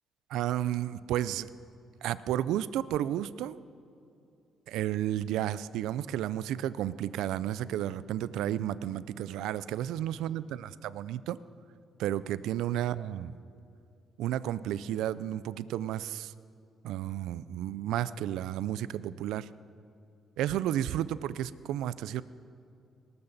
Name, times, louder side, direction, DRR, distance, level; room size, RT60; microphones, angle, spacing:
voice 1, 0.3-1.5 2.0-3.6 4.7-11.4 12.0-13.4 14.2-16.3 16.8-19.5 20.4-22.2, right 12 dB, 90° right, 17 dB, 0.4 m, -32 dB
19.5 x 12.5 x 4.0 m, 2.6 s
cardioid pair, 90°, 0 cm